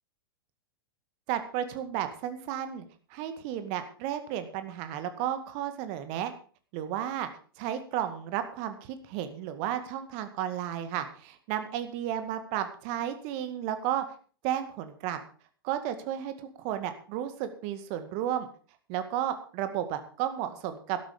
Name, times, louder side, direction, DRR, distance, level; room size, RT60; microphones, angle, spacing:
voice 1, 1.3-2.8 3.1-6.3 6.7-7.3 7.6-14.0 14.4-15.2 15.6-18.5 18.9-21.0, right 10 dB, 45° right, 9 dB, 2.0 m, -33 dB
12.5 x 12.0 x 5.1 m, 0.41 s
figure-of-eight pair, 100°, 12 cm